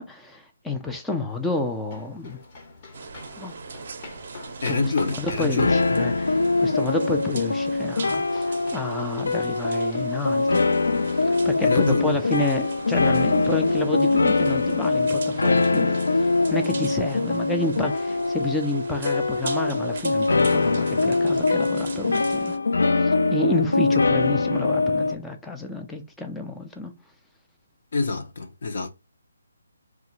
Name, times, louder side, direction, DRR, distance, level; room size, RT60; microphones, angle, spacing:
voice 1, 0.0-2.4 3.4-3.6 4.7-4.9 5.2-10.7 11.2-22.6 23.0-26.9, left 2 dB, 5° left, 0.4 m, -30 dB
sound 1, 1.3-13.1, left 3 dB, 30° left, 0.7 m, -44 dB
sound 2, 2.9-22.6, right 5 dB, 45° right, 0.6 m, -40 dB
voice 2, 4.6-5.8 11.6-12.1 27.9-28.9, left 3 dB, 55° left, 0.7 m, -25 dB
sound 3, 5.6-25.1, left 3 dB, 90° left, 0.4 m, -23 dB
2.9 x 2.4 x 2.8 m
hypercardioid pair, 170°, 0 cm